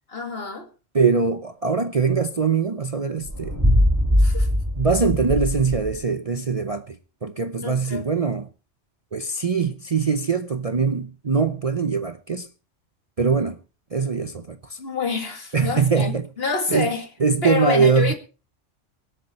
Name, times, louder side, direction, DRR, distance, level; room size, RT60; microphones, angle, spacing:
voice 1, 0.1-0.7 4.2-4.5 7.6-8.0 14.8-16.1 16.4-17.0 17.4-18.2, left 5 dB, 55° left, 2.3 m, -27 dB
voice 2, 0.9-3.6 4.8-8.5 9.1-12.5 13.2-13.6 13.9-14.8 15.5-16.3 16.7-16.9 17.2-18.1, right 5 dB, 35° right, 0.7 m, -22 dB
sound 1, 3.2-6.0, equal, 15° right, 1.5 m, -21 dB
24.5 x 8.3 x 4.2 m
omnidirectional pair, 1.2 m